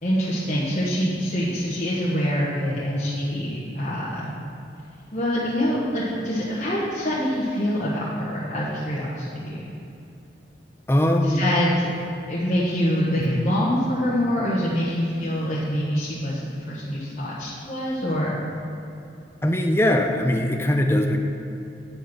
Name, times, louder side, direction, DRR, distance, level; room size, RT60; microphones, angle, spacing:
voice 1, 0.0-4.3 5.1-9.7 11.2-11.9 12.3-16.4 16.7-18.4, equal, 40° left, -8 dB, 1.2 m, -25 dB
voice 2, 10.9-11.5 13.2-13.4 19.4-21.2, left 1 dB, 15° left, 3 dB, 0.5 m, -21 dB
9.0 x 5.1 x 6.0 m, 2.7 s
head